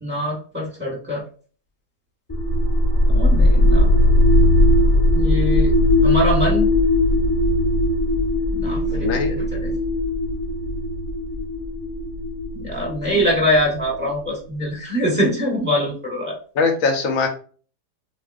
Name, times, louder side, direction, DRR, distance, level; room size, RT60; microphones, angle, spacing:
voice 1, 0.0-1.2 3.1-3.9 5.1-5.7 6.0-6.7 8.5-9.8 12.5-16.4, equal, 5° right, -2 dB, 1.2 m, -23 dB
sound 1, 2.3-14.1, left 1 dB, 20° left, 0.7 m, -18 dB
voice 2, 16.5-17.3, left 4 dB, 60° left, 3 dB, 1.1 m, -20 dB
4.1 x 2.6 x 2.4 m, 0.40 s
omnidirectional pair, 1.7 m